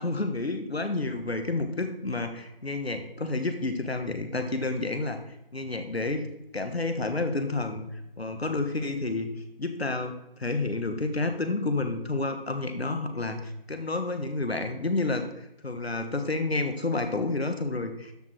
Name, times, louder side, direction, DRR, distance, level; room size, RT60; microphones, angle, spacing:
voice 1, 0.0-5.2 5.5-6.3 6.5-9.3 9.6-18.1, left 2 dB, 85° left, 7 dB, 1.5 m, -30 dB
12.5 x 4.9 x 4.6 m, 0.83 s
figure-of-eight pair, 175°, 30 cm